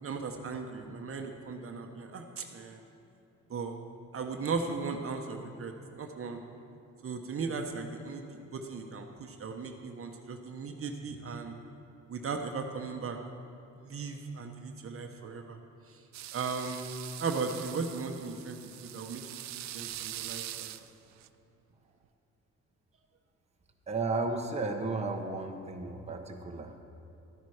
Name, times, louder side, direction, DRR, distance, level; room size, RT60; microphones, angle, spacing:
voice 1, 0.0-2.8 3.5-3.8 4.1-6.4 7.0-8.2 8.5-11.5 12.1-13.2 13.8-15.6 15.9-16.0 16.3-16.9 17.2-19.2 19.5-20.7, right 4 dB, 45° right, 4 dB, 1.1 m, -37 dB
sound 1, 16.1-21.3, right 13 dB, 65° right, 0.5 m, -43 dB
voice 2, 23.9-26.8, right 3 dB, 20° right, 2 dB, 1.0 m, -34 dB
12.5 x 10.5 x 4.9 m, 2.8 s
cardioid pair, 90°, 30 cm